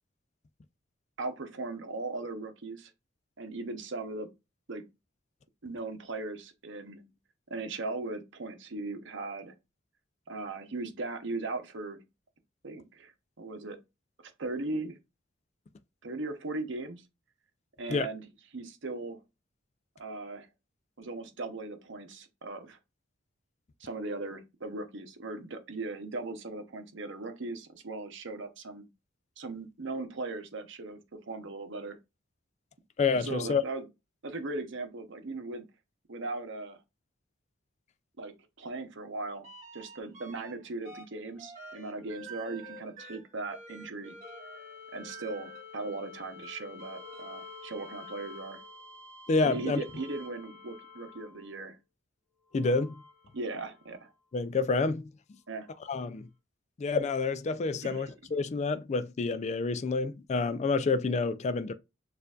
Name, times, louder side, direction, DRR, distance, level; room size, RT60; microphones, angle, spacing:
voice 1, 1.2-2.9 3.4-4.3 4.7-4.8 5.6-7.1 7.5-9.6 10.3-12.0 12.6-13.8 14.4-15.0 16.0-17.1 17.8-18.3 18.5-19.2 20.0-20.5 21.0-22.8 23.8-28.9 29.4-32.0 33.2-33.8 34.2-35.6 36.1-36.8 38.2-44.2 44.9-48.6 49.4-51.8 53.3-54.1 55.5-55.7 57.8-58.1, right 3 dB, 65° right, 0.8 m, -38 dB
voice 2, 33.0-33.6 49.3-49.8 52.5-53.0 54.3-55.1 55.9-56.3 56.8-61.7, left 4 dB, 35° left, 0.3 m, -28 dB
sound 1, 39.4-40.5 40.8-51.6 52.5-54.0 55.8-55.9, left 1 dB, 40° right, 1.8 m, -48 dB
6.6 x 2.5 x 2.4 m
head